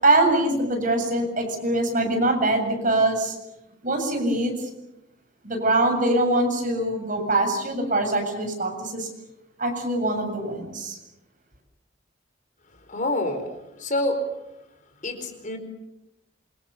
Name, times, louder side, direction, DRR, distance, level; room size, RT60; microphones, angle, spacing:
voice 1, 0.0-3.4 3.8-4.7 5.4-9.1 9.6-11.0, right 2 dB, 40° right, 4 dB, 7.5 m, -23 dB
voice 2, 12.9-13.5 13.8-14.2 15.0-15.6, left 1 dB, 40° left, 7 dB, 4.5 m, -27 dB
27.5 x 26.0 x 7.1 m, 0.89 s
head